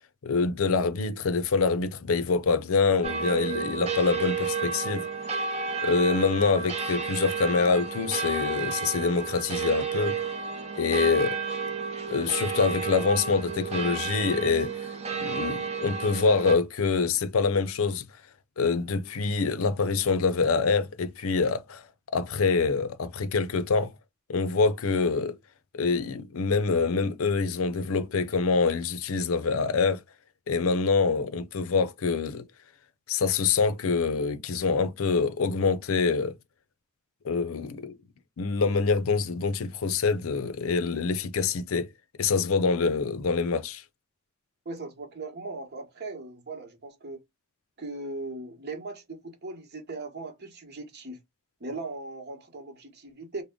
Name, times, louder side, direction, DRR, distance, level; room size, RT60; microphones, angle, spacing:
voice 1, 0.2-5.1 5.8-10.2 10.8-11.4 12.1-14.9 15.2-18.0 18.6-21.8 22.1-23.9 24.3-25.4 25.7-30.0 30.5-32.5 33.1-36.3 37.2-38.0 38.4-41.9 42.2-43.8, left 4 dB, 70° left, 0.5 m, -25 dB
sound 1, 3.0-16.6, right 5 dB, 30° right, 0.7 m, -32 dB
voice 2, 44.6-47.2 47.8-51.2 51.6-53.4, right 2 dB, 50° right, 1.0 m, -38 dB
3.5 x 2.1 x 3.6 m
head